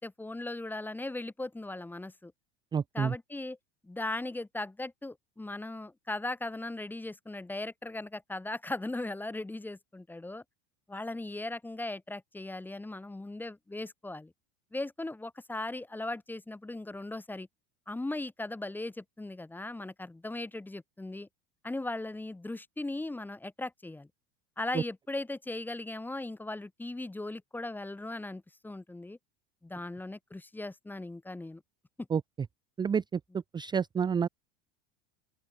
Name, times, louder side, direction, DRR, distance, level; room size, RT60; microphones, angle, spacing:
voice 1, 0.0-2.3 2.9-3.6 3.8-10.4 10.9-14.3 14.7-17.5 17.9-21.3 21.6-24.1 24.6-29.2 29.6-31.6 32.0-32.1, left 2 dB, 5° left, 0.9 m, -38 dB
voice 2, 2.7-3.1 24.7-24.8 32.1-32.2 32.8-33.2 33.5-34.3, right 6 dB, 15° right, 0.5 m, -28 dB
open air
supercardioid pair, 140°, 34 cm